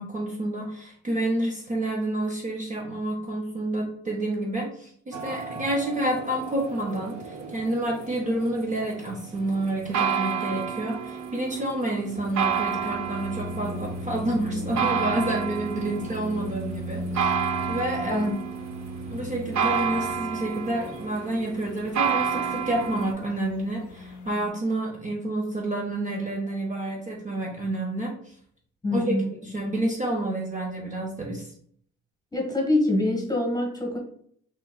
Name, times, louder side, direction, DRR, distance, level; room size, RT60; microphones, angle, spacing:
voice 1, 0.0-18.3 19.1-28.3 28.9-29.2 29.4-31.5, right 1 dB, 25° right, -1 dB, 0.6 m, -29 dB
sound 1, 5.1-23.1, right 7 dB, 65° right, 0.6 m, -31 dB
sound 2, 12.2-24.5, left 1 dB, 85° left, 0.6 m, -38 dB
voice 2, 28.8-29.3 32.3-34.0, left 1 dB, 15° left, 1 dB, 1.2 m, -25 dB
4.0 x 3.0 x 2.3 m, 0.63 s
cardioid pair, 90°, 30 cm